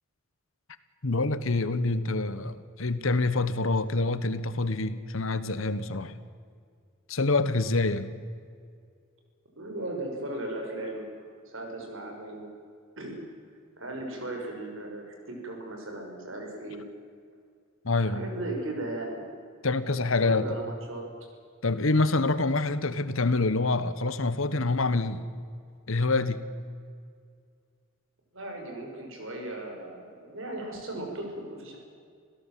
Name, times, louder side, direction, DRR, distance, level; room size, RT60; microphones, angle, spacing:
voice 1, 1.0-6.1 7.1-8.1 17.8-18.3 19.6-20.6 21.6-25.2 25.9-26.4, left 3 dB, 70° left, 13 dB, 1.3 m, -26 dB
voice 2, 9.6-11.1 11.5-12.5 13.0-13.2 13.8-16.9 18.0-19.3 20.2-21.0 28.3-31.8, right 1 dB, 65° right, 2 dB, 6.0 m, -37 dB
26.5 x 16.5 x 7.6 m, 2.2 s
head